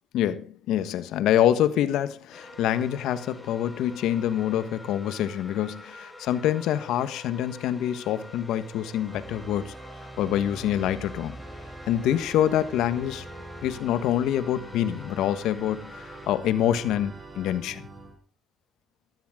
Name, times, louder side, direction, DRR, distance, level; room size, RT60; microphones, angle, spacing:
voice 1, 0.1-9.7 10.2-11.4 11.9-13.2 13.6-17.8, left 11 dB, 80° left, 1.4 m, -26 dB
sound 1, 2.3-16.3, left 2 dB, 15° left, 5.4 m, -47 dB
Organ, 9.1-18.2, right 2 dB, 40° right, 6.9 m, -44 dB
17.0 x 13.5 x 3.8 m
supercardioid pair, 65°, 0 cm